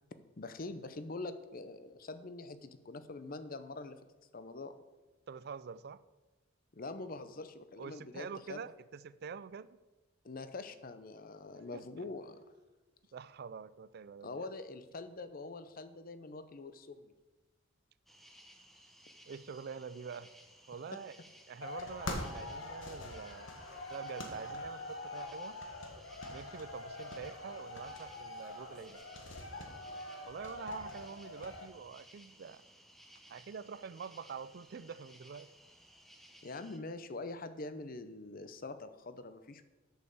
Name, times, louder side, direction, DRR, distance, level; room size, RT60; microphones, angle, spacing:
voice 1, 0.4-4.0 4.3-4.7 6.7-8.6 10.2-12.5 14.2-17.1 36.4-39.6, left 3 dB, 45° left, 0.7 m, -44 dB
voice 2, 5.3-6.0 7.8-9.8 11.7-12.0 13.1-14.4 19.3-20.3 20.7-21.2 21.5-23.5 23.9-25.6 26.3-29.0 30.3-32.6 33.3-35.5, right 6 dB, 50° right, 0.4 m, -46 dB
sound 1, 18.1-36.8, equal, ahead, 0.8 m, -60 dB
sound 2, 21.6-31.7, left 1 dB, 65° left, 1.4 m, -44 dB
8.1 x 6.6 x 6.9 m
head